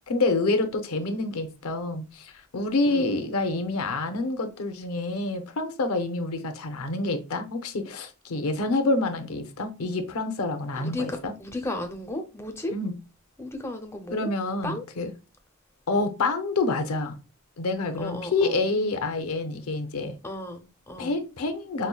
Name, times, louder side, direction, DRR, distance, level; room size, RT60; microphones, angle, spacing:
voice 1, 0.1-11.3 12.7-13.0 14.1-15.1 15.9-17.2 17.6-20.2 21.0-21.9, left 2 dB, 85° left, 0.7 m, -27 dB
voice 2, 0.9-1.3 2.9-3.1 10.8-12.7 13.4-14.3 14.6-14.8 18.0-18.6 20.2-21.1, left 1 dB, 10° left, 0.5 m, -35 dB
5.3 x 2.2 x 2.2 m
head